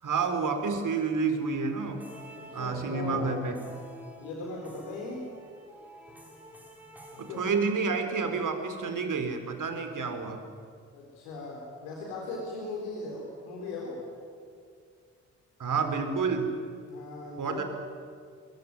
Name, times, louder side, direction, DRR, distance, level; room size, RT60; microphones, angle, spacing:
voice 1, 0.0-2.1 2.5-3.6 7.2-10.4 15.6-16.5 17.4-17.6, right 5 dB, 50° right, 7 dB, 4.3 m, -29 dB
sound 1, 1.9-8.2, left 1 dB, 5° right, 6.8 m, -48 dB
voice 2, 2.3-3.4 4.2-5.2 7.1-7.4 7.8-8.0 10.9-14.0 16.9-17.6, left 2 dB, 80° left, -1 dB, 4.0 m, -38 dB
24.5 x 22.5 x 9.5 m, 2.2 s
hypercardioid pair, 40°, 39 cm